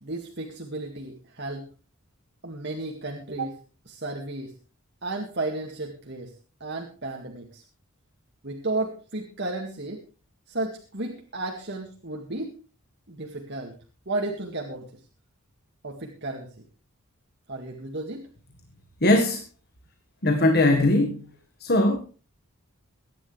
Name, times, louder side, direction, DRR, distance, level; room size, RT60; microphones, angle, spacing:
voice 1, 0.0-1.7 2.4-3.6 3.9-4.5 5.0-6.3 6.6-7.6 8.4-10.0 10.5-12.6 13.1-13.8 14.1-14.9 15.8-16.5 17.5-18.3, right 2 dB, 50° right, 1 dB, 2.1 m, -33 dB
voice 2, 19.0-19.4 20.2-21.2 21.6-22.0, left 1 dB, 45° left, 5 dB, 1.6 m, -20 dB
23.0 x 10.5 x 3.3 m, 0.35 s
head